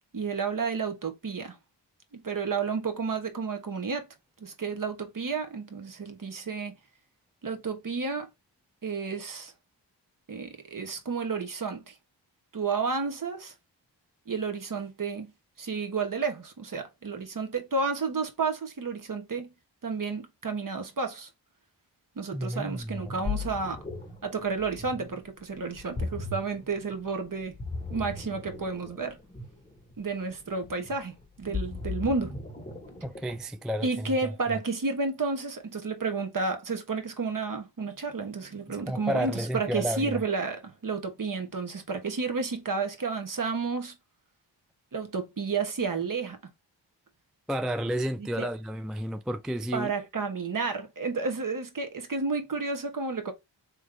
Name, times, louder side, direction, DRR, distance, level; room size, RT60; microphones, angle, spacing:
voice 1, 0.1-1.6 2.1-4.1 4.4-6.7 7.4-8.3 8.8-9.5 10.3-11.9 12.5-13.5 14.3-15.3 15.6-19.5 19.8-21.3 22.2-23.8 24.2-27.6 27.9-29.2 30.0-32.4 33.8-43.9 44.9-46.4 48.2-48.5 49.7-53.3, right 4 dB, 45° right, 1.2 m, -31 dB
voice 2, 22.3-23.1 33.0-34.1 34.5-34.6 38.7-40.2 47.5-49.9, equal, ahead, 0.3 m, -31 dB
Ocean, 22.8-33.6, left 4 dB, 15° left, 1.3 m, -38 dB
3.7 x 3.2 x 3.3 m
cardioid pair, 65°, 46 cm